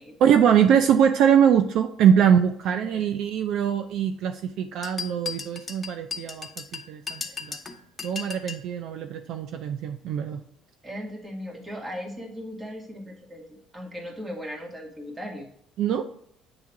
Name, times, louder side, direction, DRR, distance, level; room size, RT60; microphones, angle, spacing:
voice 1, 0.2-7.6 8.0-10.4 15.8-16.1, right 8 dB, 70° right, 7 dB, 0.5 m, -22 dB
voice 2, 2.7-3.1 10.8-15.5, equal, 20° right, 0 dB, 2.0 m, -38 dB
sound 1, 4.8-8.7, left 5 dB, 25° left, 1.0 m, -36 dB
8.8 x 3.7 x 4.7 m, 0.66 s
cardioid pair, 105°, 0 cm